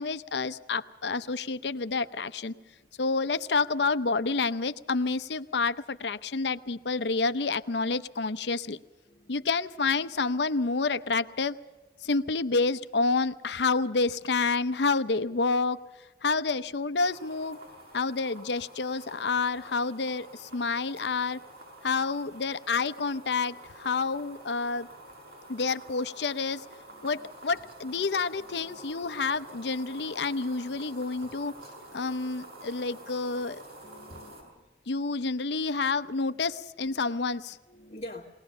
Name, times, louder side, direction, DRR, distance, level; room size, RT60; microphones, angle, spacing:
voice 1, 0.0-2.5 3.0-8.8 9.3-11.6 12.0-15.8 16.2-17.6 17.9-21.4 21.8-24.9 25.5-26.6 27.0-31.5 31.9-33.6 34.9-37.6, left 4 dB, 75° left, 12 dB, 0.7 m, -29 dB
voice 2, 9.1-9.5 26.9-27.3 27.5-28.1 28.3-28.8 33.3-33.4 33.8-34.6 35.0-35.2 36.8-37.0 37.7-38.3, left 1 dB, 40° left, -4 dB, 1.6 m, -47 dB
sound 1, 17.0-34.4, right 1 dB, 55° right, 7.0 m, -48 dB
21.5 x 19.0 x 6.7 m, 1.2 s
head